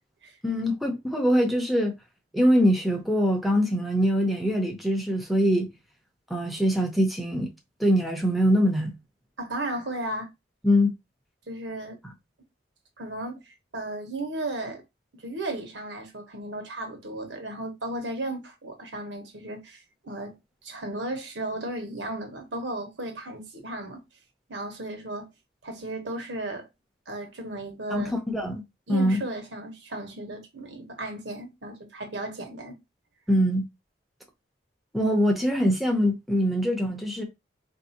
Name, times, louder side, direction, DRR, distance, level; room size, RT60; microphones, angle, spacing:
voice 1, 0.4-1.9 2.3-5.7 6.3-7.5 7.8-8.9 10.6-10.9 27.9-28.6 28.9-29.2 33.3-33.7 34.9-37.2, equal, ahead, 0.6 m, -23 dB
voice 2, 9.4-10.3 11.5-12.0 13.0-14.8 15.1-20.4 20.6-24.0 24.5-25.3 25.6-26.7 27.1-28.1 28.9-32.8, right 1 dB, 85° right, 1.1 m, -35 dB
3.8 x 2.7 x 2.8 m
head